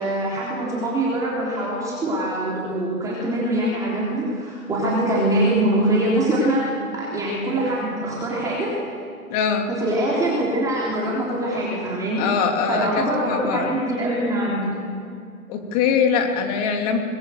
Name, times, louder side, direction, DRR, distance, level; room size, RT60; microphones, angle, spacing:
voice 1, 0.0-8.7 9.7-12.3 12.7-14.8, right 1 dB, 5° right, -5 dB, 3.4 m, -23 dB
voice 2, 9.3-9.7 12.2-13.7 15.5-17.0, left 6 dB, 25° left, 4 dB, 2.8 m, -22 dB
23.0 x 21.0 x 7.8 m, 2.3 s
hypercardioid pair, 160°, 45 cm